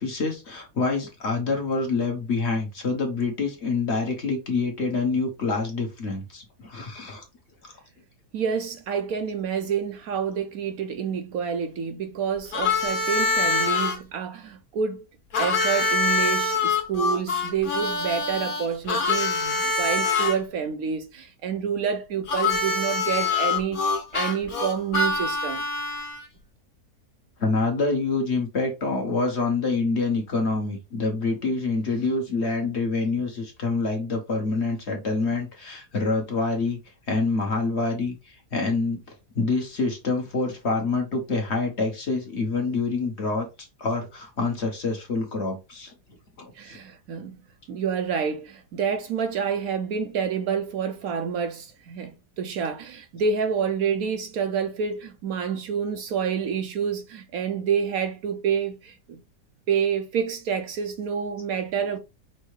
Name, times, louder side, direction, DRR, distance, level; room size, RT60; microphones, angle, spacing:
voice 1, 0.0-7.2 7.6-7.7 27.4-36.8 37.1-39.0 39.3-43.5 43.8-45.9 46.4-46.8, left 3 dB, 45° left, 1.1 m, -26 dB
voice 2, 8.3-15.0 15.4-25.6 46.6-47.4 47.7-59.2 59.7-62.0, right 7 dB, 70° right, 1.0 m, -28 dB
Harmonica, 12.5-14.0 15.3-20.3 22.3-26.2, left 4 dB, 60° left, 1.5 m, -25 dB
5.4 x 2.7 x 3.1 m
omnidirectional pair, 1.7 m